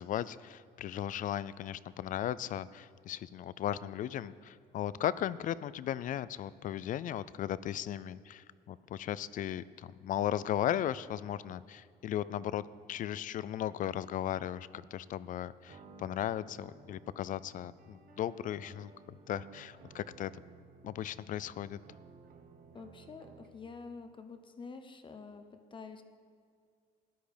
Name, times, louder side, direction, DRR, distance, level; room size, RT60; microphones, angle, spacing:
voice 1, 0.0-20.3 20.8-21.8, left 11 dB, 50° left, 18 dB, 0.4 m, -36 dB
sound 1, 15.7-23.7, right 4 dB, 55° right, 1.1 m, -56 dB
voice 2, 22.7-26.0, left 4 dB, 30° left, 8 dB, 0.8 m, -48 dB
13.5 x 10.0 x 5.1 m, 2.2 s
cardioid pair, 110°, 17 cm